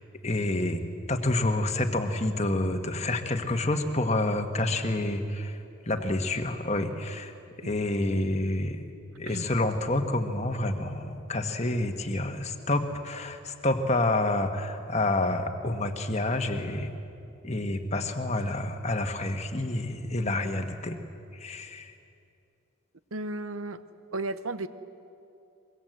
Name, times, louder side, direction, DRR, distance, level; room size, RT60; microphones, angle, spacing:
voice 1, 0.2-8.8 9.2-16.9 17.4-21.0 21.3-21.9, left 2 dB, 30° left, 6 dB, 1.4 m, -28 dB
voice 2, 23.1-23.8 24.1-24.7, right 2 dB, 80° right, 12 dB, 1.0 m, -35 dB
24.5 x 22.5 x 8.0 m, 2.6 s
head